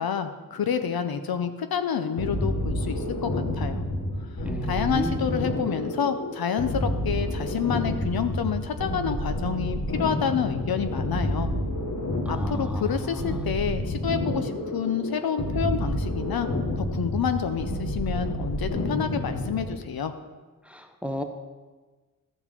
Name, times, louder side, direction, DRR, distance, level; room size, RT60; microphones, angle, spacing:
voice 1, 0.0-3.8 4.7-11.5 12.3-16.5 16.8-20.1, left 7 dB, 85° left, 9 dB, 0.7 m, -28 dB
sound 1, 2.2-19.8, left 1 dB, 50° left, 1.4 m, -29 dB
voice 2, 4.4-5.2 12.2-13.5 20.6-21.2, equal, 5° right, 6 dB, 0.6 m, -34 dB
13.0 x 7.3 x 3.5 m, 1.3 s
wide cardioid pair, 140°, 35 cm